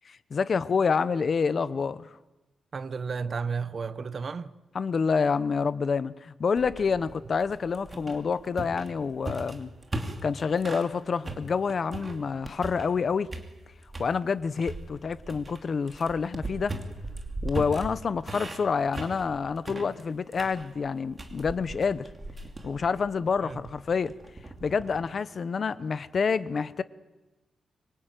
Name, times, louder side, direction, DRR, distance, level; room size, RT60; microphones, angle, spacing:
voice 1, 0.0-2.1 4.7-9.7 10.2-13.3 14.0-16.8 17.4-22.1 22.6-24.1 24.6-26.8, left 5 dB, 35° left, 0.9 m, -28 dB
voice 2, 2.7-4.5 12.1-12.2 23.4-23.6, right 5 dB, 35° right, 0.9 m, -33 dB
sound 1, 6.6-10.9 11.2-13.0 13.3-14.1 14.6-25.1, right 2 dB, 20° right, 2.8 m, -39 dB
25.5 x 23.0 x 9.1 m
wide cardioid pair, 175°, 0 cm